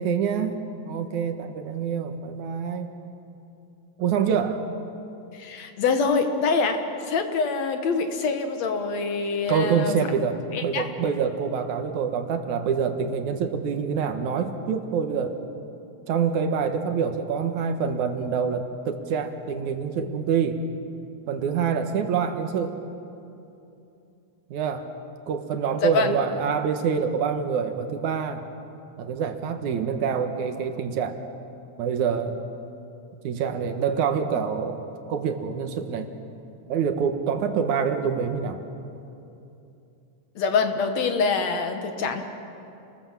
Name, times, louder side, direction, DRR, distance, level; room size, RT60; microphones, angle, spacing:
voice 1, 0.0-2.9 4.0-4.6 9.5-15.4 16.1-20.6 21.3-22.8 24.5-24.9 25.3-28.4 29.0-31.2 31.8-32.4 33.2-36.1 36.7-38.6, right 6 dB, 80° right, 7 dB, 2.8 m, -26 dB
voice 2, 5.3-9.9 10.5-10.9 25.8-26.1 40.4-42.2, left 4 dB, 65° left, 6 dB, 2.6 m, -25 dB
29.0 x 20.0 x 7.5 m, 2.8 s
omnidirectional pair, 3.4 m